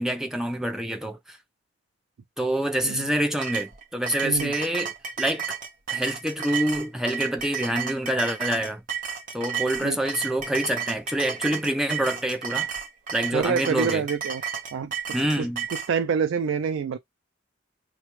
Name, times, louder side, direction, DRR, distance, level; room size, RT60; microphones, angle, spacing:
voice 1, 0.0-1.4 2.4-5.4 5.9-8.8 9.3-12.7 13.1-14.0 15.1-15.7, right 1 dB, 5° right, 0.4 m, -26 dB
sound 1, 3.4-15.9, right 7 dB, 45° right, 0.7 m, -32 dB
voice 2, 4.2-4.5 9.8-10.0 13.3-14.4 14.7-14.9 15.2-17.0, right 6 dB, 80° right, 0.4 m, -27 dB
4.2 x 2.2 x 3.0 m
head